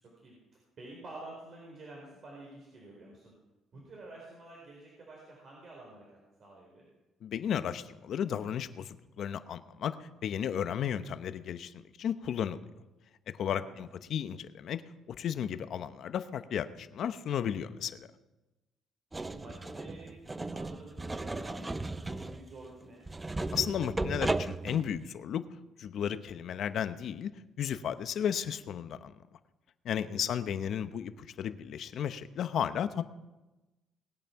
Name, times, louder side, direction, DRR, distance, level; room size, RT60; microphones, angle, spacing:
voice 1, 0.0-3.3 3.7-6.0 6.4-6.9 13.6-13.8 17.4-18.1 19.3-23.1 30.1-30.5, right 2 dB, 50° right, -2 dB, 4.1 m, -50 dB
voice 2, 7.2-12.6 13.3-14.8 15.1-18.1 23.5-25.4 25.8-27.3 27.6-29.1 29.8-33.0, left 9 dB, 60° left, 11 dB, 0.8 m, -34 dB
sound 1, 19.1-25.1, right 2 dB, 15° right, 0.5 m, -36 dB
19.5 x 9.0 x 5.8 m, 1.1 s
cardioid pair, 110°, 0 cm